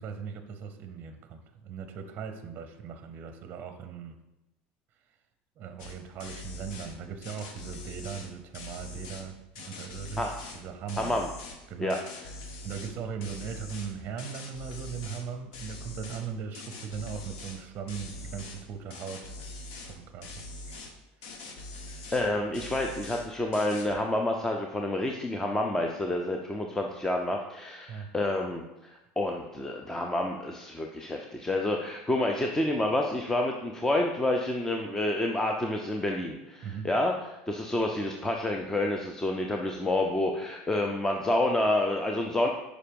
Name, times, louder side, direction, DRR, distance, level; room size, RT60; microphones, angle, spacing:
voice 1, 0.0-4.1 5.6-11.2 11.7-12.0 12.6-19.3 19.9-20.8 21.2-21.7 27.9-28.1 36.6-36.9, right 7 dB, 40° right, 8 dB, 0.6 m, -39 dB
sound 1, 5.8-5.9 6.2-6.9 7.2-9.3 9.6-10.6 10.9-11.6 11.9-12.9 13.2-15.3 15.5-16.3 16.5-17.6 17.9-18.6 18.9-20.0 20.2-20.9 21.2-22.3 22.5-23.3 23.5-23.9, left 2 dB, 75° left, 1.1 m, -43 dB
voice 2, 11.0-11.3 11.8-12.0 22.1-42.5, left 1 dB, 10° left, 2 dB, 0.5 m, -29 dB
5.5 x 5.0 x 5.2 m, 0.96 s
supercardioid pair, 130°, 5 cm